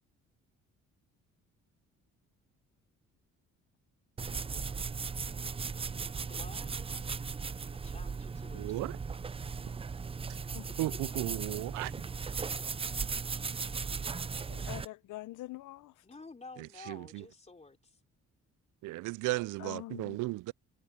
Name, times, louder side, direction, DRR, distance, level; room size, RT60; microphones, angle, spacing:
sound 1, 4.2-14.9, right 5 dB, 20° right, 0.4 m, -37 dB
voice 1, 6.2-7.4 7.8-9.1 10.7-11.0 16.0-18.0, left 3 dB, 20° left, 3.6 m, -52 dB
voice 2, 8.5-9.0 10.8-11.9 16.6-17.2 18.8-20.5, right 19 dB, 85° right, 0.5 m, -35 dB
voice 3, 14.5-15.9 19.6-20.2, left 16 dB, 85° left, 0.8 m, -44 dB
cardioid pair, 90°, 30 cm